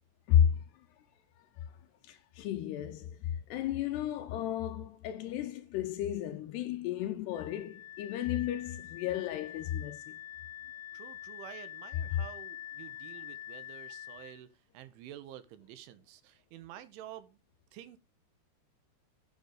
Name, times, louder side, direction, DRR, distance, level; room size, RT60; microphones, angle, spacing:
voice 1, 0.3-0.6 2.1-10.1, left 10 dB, 80° left, 2.5 m, -32 dB
Wind instrument woodwind instrument, 7.3-14.4, left 12 dB, 35° left, 2.2 m, -46 dB
voice 2, 10.9-14.5 14.7-17.4 17.7-18.0, right 12 dB, 80° right, 3.5 m, -49 dB
9.7 x 7.2 x 6.4 m
omnidirectional pair, 5.6 m